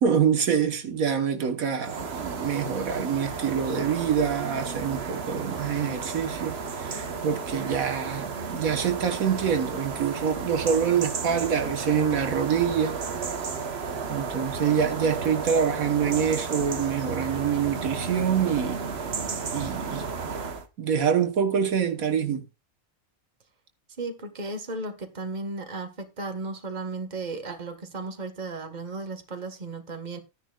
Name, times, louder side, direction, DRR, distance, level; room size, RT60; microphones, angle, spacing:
voice 1, 0.0-13.0 14.1-18.8 19.5-20.1 20.8-22.4, right 7 dB, 80° right, 1.7 m, -26 dB
sound 1, 1.8-20.7, right 5 dB, 50° right, 1.3 m, -33 dB
voice 2, 24.0-30.2, right 3 dB, 30° right, 1.5 m, -35 dB
14.5 x 10.0 x 2.4 m
omnidirectional pair, 1.4 m